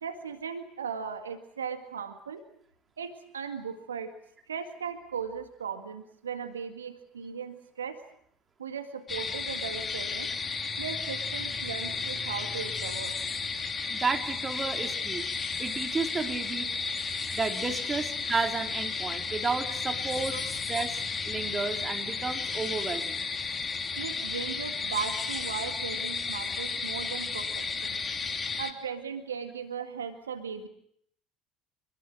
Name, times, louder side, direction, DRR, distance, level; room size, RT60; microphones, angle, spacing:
voice 1, 0.0-2.4 3.0-4.1 4.5-8.0 8.6-10.3 10.8-13.2 20.3-20.5 24.0-28.0 28.6-30.7, right 6 dB, 85° right, 7 dB, 1.9 m, -37 dB
sound 1, 9.1-28.7, left 4 dB, 30° left, 3.2 m, -33 dB
voice 2, 13.9-15.2 15.6-16.7 17.4-23.3, right 4 dB, 25° right, 5 dB, 3.4 m, -32 dB
26.5 x 21.5 x 7.7 m, 0.69 s
figure-of-eight pair, 65°, 0 cm